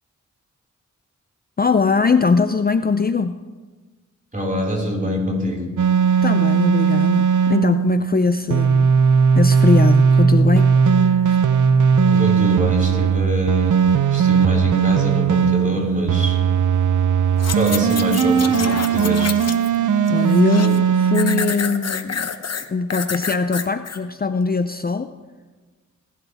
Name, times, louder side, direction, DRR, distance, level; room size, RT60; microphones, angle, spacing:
voice 1, 1.6-3.4 6.2-8.9 9.4-10.8 11.2-11.4 19.8-22.3 22.7-25.1, left 4 dB, 30° left, 10 dB, 0.5 m, -21 dB
voice 2, 4.3-5.6 12.1-13.8 14.1-16.4 17.5-19.4, equal, 25° right, -2 dB, 5.2 m, -24 dB
sound 1, 5.8-21.5, right 6 dB, 90° right, 0.7 m, -17 dB
sound 2, 17.4-19.8 20.1-20.8 21.1-24.0 24.5-24.6, left 6 dB, 60° left, 0.9 m, -28 dB
20.0 x 11.0 x 3.5 m, 1.3 s
cardioid pair, 55°, 30 cm